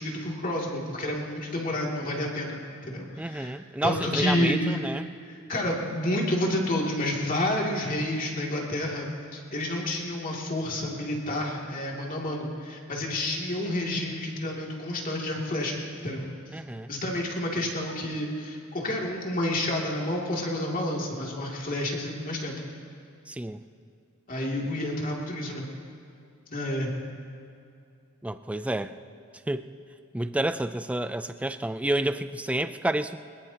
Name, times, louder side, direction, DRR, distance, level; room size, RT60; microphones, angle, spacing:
voice 1, 0.0-3.5 3.8-4.8 5.2-16.2 16.9-22.6 24.3-25.6 26.5-26.9, left 1 dB, 40° left, -2 dB, 2.6 m, -29 dB
voice 2, 3.2-5.1 16.5-16.9 23.3-23.6 28.2-28.9 29.5-29.7 30.1-33.2, right 1 dB, 5° right, 11 dB, 0.4 m, -29 dB
22.5 x 21.0 x 2.9 m, 2.5 s
head